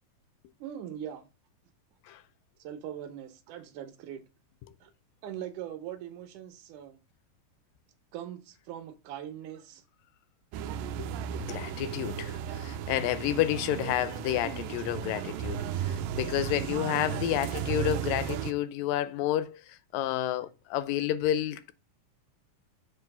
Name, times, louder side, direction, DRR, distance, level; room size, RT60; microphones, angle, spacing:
voice 1, 0.6-1.3 2.6-4.2 4.8-4.9 5.2-7.0 8.1-9.8 17.3-17.5 20.3-20.4, right 10 dB, 70° right, 2.3 m, -41 dB
sound 1, 10.5-18.5, right 10 dB, 90° right, 2.3 m, -35 dB
voice 2, 11.0-21.7, left 12 dB, 85° left, 2.3 m, -30 dB
7.5 x 3.1 x 5.9 m
omnidirectional pair, 3.9 m